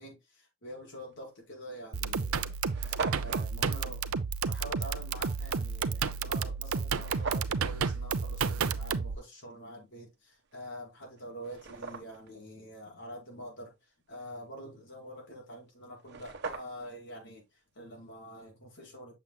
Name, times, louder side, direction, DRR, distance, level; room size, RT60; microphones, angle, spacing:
voice 1, 0.0-19.1, equal, 60° left, 5.0 m, -46 dB
sound 1, 1.1-1.3 2.0-2.1 2.3-2.4 2.6-3.5 6.9-7.6 10.5-10.6 11.2-12.3 15.7-15.8 16.0-17.0, right 4 dB, 55° right, 1.3 m, -39 dB
sound 2, 1.9-9.2, right 5 dB, 75° right, 0.7 m, -31 dB
7.5 x 7.2 x 2.3 m
head